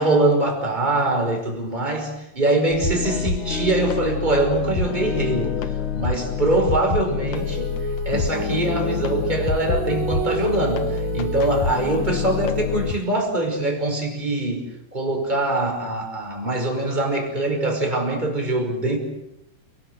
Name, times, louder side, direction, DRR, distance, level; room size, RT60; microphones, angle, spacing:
voice 1, 0.0-5.6 5.9-7.7 8.0-14.6 14.9-19.0, right 2 dB, 10° right, 2 dB, 5.3 m, -23 dB
sound 1, 2.7-13.0, left 6 dB, 60° left, 2.6 m, -27 dB
Female singing, 7.4-13.1, right 3 dB, 45° right, 3.6 m, -31 dB
29.0 x 19.5 x 8.1 m, 0.82 s
omnidirectional pair, 4.3 m